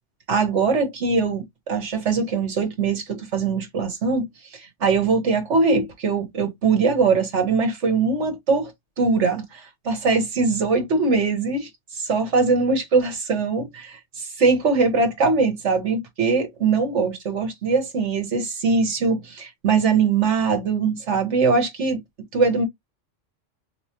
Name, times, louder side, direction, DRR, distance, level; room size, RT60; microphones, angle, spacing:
voice 1, 0.3-4.3 4.5-8.7 9.0-22.0 22.3-22.7, right 4 dB, 70° right, 1.7 m, -22 dB
3.7 x 3.2 x 2.9 m
omnidirectional pair, 1.3 m